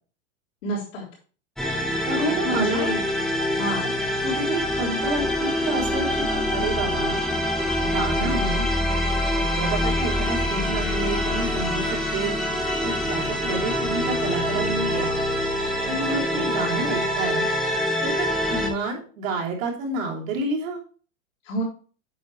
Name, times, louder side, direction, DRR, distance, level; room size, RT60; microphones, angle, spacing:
voice 1, 0.6-1.1 2.2-3.0 3.6-3.9 15.8-16.5 21.4-21.6, equal, 65° left, -6 dB, 3.8 m, -29 dB
sound 1, 1.6-18.7, left 1 dB, ahead, 0.9 m, -25 dB
voice 2, 2.0-2.9 4.2-6.1 6.3-7.2 7.8-8.7 9.4-12.3 12.8-15.1 15.9-17.5 18.0-20.8, right 3 dB, 75° right, -2 dB, 3.1 m, -29 dB
8.6 x 6.8 x 3.1 m, 0.40 s
supercardioid pair, 170°, 40 cm